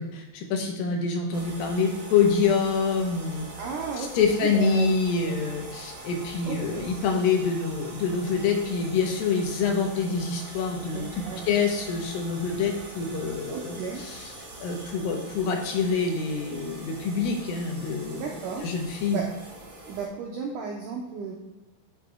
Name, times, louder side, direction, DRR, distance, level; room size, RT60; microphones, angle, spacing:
voice 1, 0.0-3.5 4.0-14.3 14.6-18.3 18.6-19.2, left 5 dB, 75° left, 3 dB, 2.4 m, -26 dB
sound 1, 1.3-20.1, right 2 dB, 45° right, 3.1 m, -43 dB
voice 2, 3.6-4.9 5.3-5.5 6.5-6.9 10.9-11.5 13.5-14.0 18.1-18.6 19.1-19.2 19.9-21.4, right 5 dB, 85° right, 0 dB, 1.8 m, -34 dB
8.0 x 8.0 x 2.3 m, 1.1 s
omnidirectional pair, 4.6 m